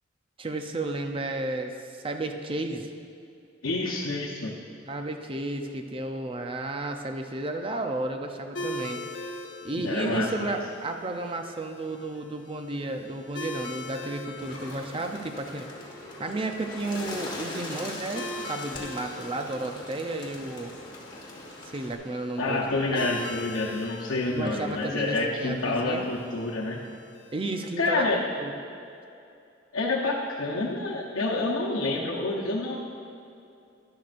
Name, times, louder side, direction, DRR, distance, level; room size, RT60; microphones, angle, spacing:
voice 1, 0.4-2.9 4.9-9.0 9.6-15.7 16.2-20.7 21.7-22.6 23.0-23.1 24.3-26.0 27.3-28.1 28.4-28.5, right 2 dB, 25° right, 5 dB, 0.5 m, -32 dB
voice 2, 3.6-4.5 9.8-10.6 22.4-26.8 27.8-28.2 29.7-32.8, left 2 dB, 85° left, -5 dB, 0.9 m, -28 dB
sound 1, 8.5-27.7, left 2 dB, 65° left, 0.6 m, -43 dB
Bird, 14.4-21.9, left 2 dB, 20° left, 1.3 m, -41 dB
12.0 x 10.5 x 2.5 m, 2.6 s
head